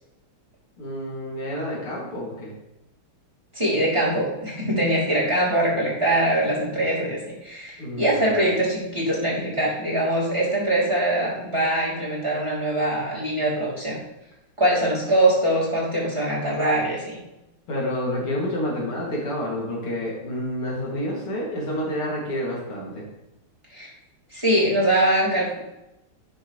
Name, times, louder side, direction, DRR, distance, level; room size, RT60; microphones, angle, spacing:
voice 1, 0.8-2.5 7.8-8.4 17.7-23.0, equal, 90° left, -4 dB, 3.5 m, -29 dB
voice 2, 3.5-14.0 14.6-17.2 23.7-23.9 24.3-25.6, right 1 dB, 15° right, -7 dB, 3.2 m, -23 dB
11.5 x 6.9 x 3.2 m, 0.91 s
omnidirectional pair, 2.3 m